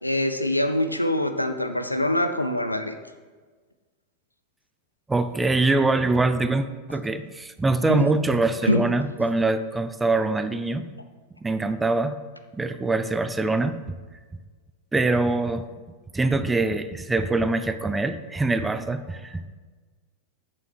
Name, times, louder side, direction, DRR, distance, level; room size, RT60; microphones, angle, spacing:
voice 1, 0.0-2.9 7.9-8.1 8.7-8.8, left 1 dB, 85° left, 8 dB, 0.6 m, -24 dB
voice 2, 5.1-10.9 11.4-12.2 12.5-14.0 14.9-15.7 16.1-19.5, right 3 dB, 10° right, 11 dB, 0.5 m, -24 dB
8.6 x 7.0 x 4.7 m, 1.4 s
figure-of-eight pair, 90°, 0 cm